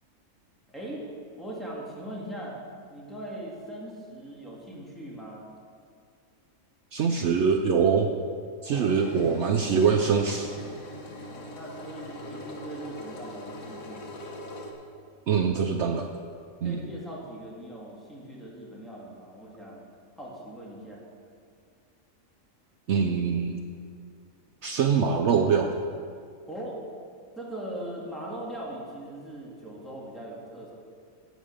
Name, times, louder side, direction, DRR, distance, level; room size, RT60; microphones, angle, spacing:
voice 1, 0.7-1.1 1.4-2.6 2.9-5.5 8.7-8.9 11.2-14.1 16.6-19.9 20.2-21.0 26.5-26.8 27.4-30.7, right 1 dB, ahead, -4 dB, 2.1 m, -40 dB
voice 2, 6.9-8.1 8.6-10.7 15.3-16.3 16.6-16.8 22.9-23.6 24.6-25.8, right 6 dB, 65° right, 4 dB, 0.8 m, -24 dB
Engine, 8.7-14.7, left 1 dB, 75° left, 1.6 m, -41 dB
9.3 x 8.3 x 6.6 m, 2.2 s
omnidirectional pair, 1.5 m